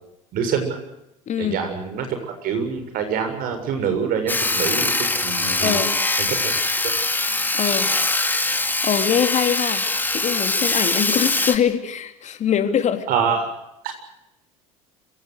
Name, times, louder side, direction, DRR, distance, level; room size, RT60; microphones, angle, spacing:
voice 1, 0.3-0.8 1.4-5.9 6.2-6.3 13.1-13.5 13.8-13.9, right 6 dB, 55° right, 6 dB, 7.1 m, -25 dB
voice 2, 1.3-1.6 5.6-6.0 7.5-7.9 8.8-9.8 10.1-13.1, left 8 dB, 40° left, 8 dB, 3.3 m, -23 dB
Sawing, 4.3-11.6, left 2 dB, 10° left, 2.3 m, -22 dB
27.0 x 17.0 x 8.2 m, 0.85 s
hypercardioid pair, 70°, 18 cm